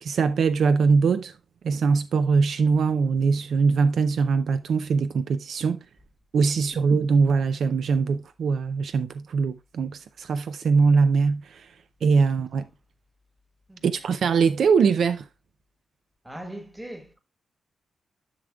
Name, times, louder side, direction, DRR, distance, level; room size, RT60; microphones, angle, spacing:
voice 1, 0.0-1.3 1.6-5.8 6.3-11.7 12.0-12.6 13.8-15.2, right 5 dB, 60° right, 0.4 m, -22 dB
voice 2, 6.5-6.9 12.2-12.7 13.7-14.1 16.2-17.2, right 1 dB, 5° right, 1.3 m, -42 dB
11.0 x 6.3 x 2.3 m
wide cardioid pair, 180°, 0 cm